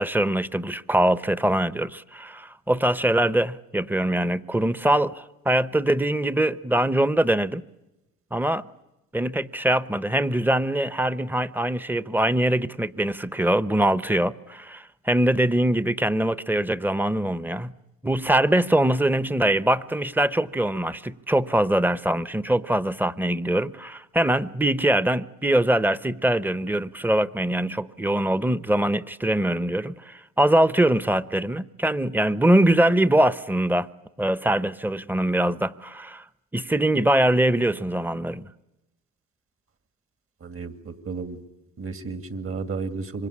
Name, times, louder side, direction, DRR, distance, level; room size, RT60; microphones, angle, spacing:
voice 1, 0.0-7.6 8.3-8.6 9.1-17.7 18.0-33.9 34.2-36.2 36.5-38.5, right 1 dB, 5° right, 0.9 m, -23 dB
voice 2, 40.4-41.4 41.8-43.3, right 4 dB, 45° right, 2.4 m, -33 dB
26.0 x 23.0 x 9.9 m
cardioid pair, 90°, 30 cm